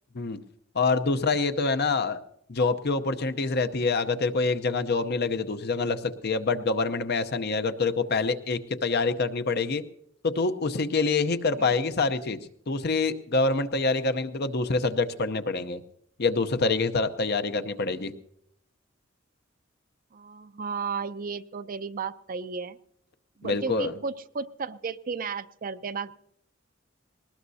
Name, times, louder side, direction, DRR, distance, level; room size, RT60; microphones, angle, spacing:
voice 1, 0.7-2.2 2.5-9.8 10.2-12.4 12.7-15.8 16.2-18.1 23.4-23.9, left 3 dB, 55° left, 9 dB, 0.8 m, -26 dB
voice 2, 20.1-22.8 23.4-26.1, right 5 dB, 45° right, 13 dB, 0.5 m, -34 dB
20.5 x 19.0 x 2.8 m, 0.72 s
head